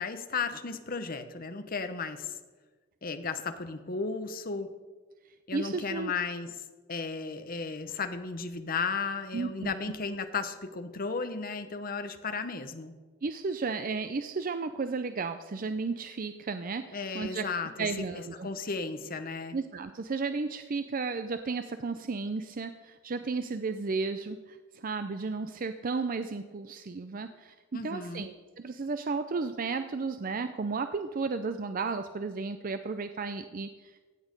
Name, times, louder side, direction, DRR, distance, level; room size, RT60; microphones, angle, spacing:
voice 1, 0.0-2.4 3.0-4.7 5.5-6.5 6.9-12.9 16.9-17.9 18.1-19.6 27.7-28.3, left 4 dB, 45° left, 9 dB, 0.9 m, -34 dB
voice 2, 5.5-6.1 9.3-9.7 13.2-17.4 17.8-18.5 19.5-27.5 27.8-33.7, right 4 dB, 45° right, 9 dB, 0.5 m, -33 dB
16.0 x 8.6 x 5.2 m, 1.4 s
head